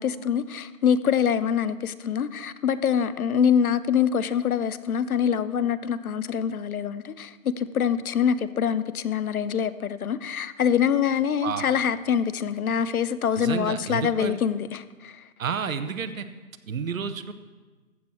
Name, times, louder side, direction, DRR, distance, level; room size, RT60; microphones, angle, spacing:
voice 1, 0.0-15.1, left 8 dB, 85° left, 0.7 m, -25 dB
voice 2, 13.3-14.4 15.4-16.3 16.7-17.3, right 6 dB, 70° right, 0.9 m, -30 dB
14.0 x 7.4 x 4.5 m
hypercardioid pair, 160°, 42 cm